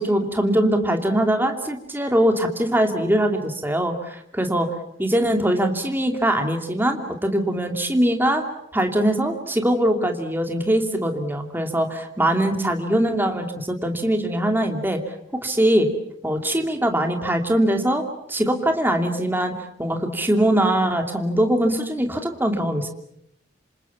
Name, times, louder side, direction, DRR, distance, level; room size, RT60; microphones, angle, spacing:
voice 1, 0.0-4.7 5.0-8.4 8.7-15.0 15.3-15.9 16.2-18.0 18.3-19.5 19.8-22.9, right 1 dB, 10° right, 5 dB, 2.7 m, -22 dB
27.0 x 27.0 x 7.2 m, 0.73 s
head